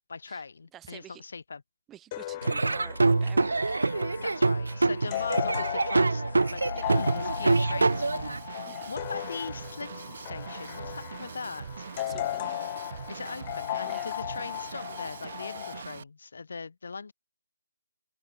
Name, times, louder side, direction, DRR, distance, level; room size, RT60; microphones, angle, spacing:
voice 1, 0.1-1.6 4.2-6.6 6.9-11.9 13.1-17.1, left 4 dB, 60° left, 3.9 m, -40 dB
voice 2, 0.7-1.2 1.9-3.8 5.0-5.5 6.7-6.9 8.7-8.9 12.0-12.5 13.9-14.1, right 12 dB, 10° right, 5.5 m, -49 dB
sound 1, 2.1-15.8, left 15 dB, 25° left, 2.4 m, -37 dB
Laughter / Drum, 2.4-8.4, right 3 dB, 80° right, 0.5 m, -25 dB
Drum kit / Drum, 6.9-16.0, right 7 dB, 45° right, 2.0 m, -42 dB
open air
hypercardioid pair, 165°, 0 cm